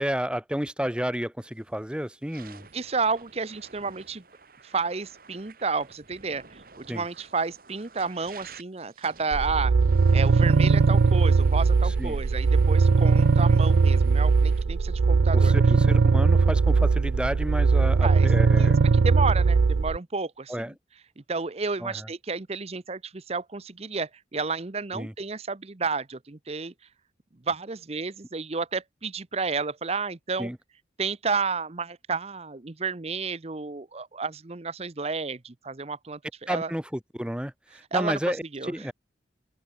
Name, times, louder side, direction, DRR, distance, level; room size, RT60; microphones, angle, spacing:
voice 1, 0.0-2.7 6.9-7.0 11.8-12.2 15.3-18.9 20.5-20.7 21.8-22.1 24.9-25.1 30.4-30.6 36.5-38.9, equal, 5° right, 1.0 m, -31 dB
sound 1, 1.5-1.7 2.2-14.6, right 5 dB, 50° right, 2.4 m, -52 dB
voice 2, 2.7-4.2 4.6-9.7 10.1-15.6 18.0-18.3 18.6-20.7 21.2-26.7 27.4-30.5 31.0-36.7 37.9-38.9, right 4 dB, 35° right, 0.8 m, -31 dB
sound 2, 9.3-20.0, right 4 dB, 85° right, 0.5 m, -20 dB
open air
head